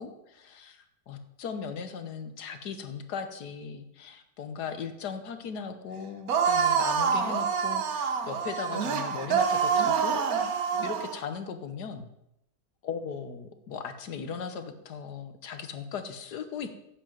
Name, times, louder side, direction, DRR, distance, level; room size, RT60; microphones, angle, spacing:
voice 1, 0.0-10.2 10.8-12.1 12.8-16.7, left 6 dB, 85° left, 8 dB, 1.7 m, -38 dB
sound 1, 6.3-11.2, right 6 dB, 65° right, 1.5 m, -26 dB
10.5 x 6.8 x 7.7 m, 0.84 s
omnidirectional pair, 1.7 m